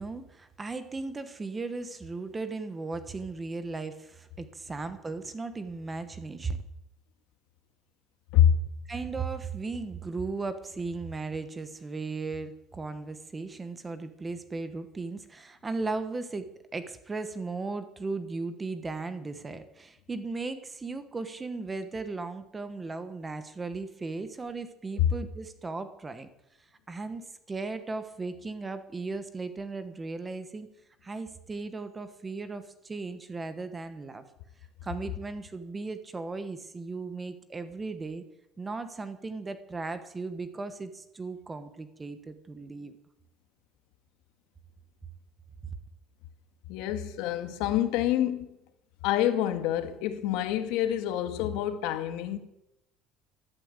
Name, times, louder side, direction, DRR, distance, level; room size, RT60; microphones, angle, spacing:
voice 1, 0.0-6.6 8.9-26.3 26.6-30.7 31.0-34.2 34.8-38.2 38.6-42.9 45.6-45.7, right 3 dB, 15° right, 1.1 m, -36 dB
voice 2, 46.7-48.5 49.0-52.4, left 11 dB, 70° left, 1.7 m, -26 dB
14.0 x 13.0 x 8.1 m
cardioid pair, 180°, 0 cm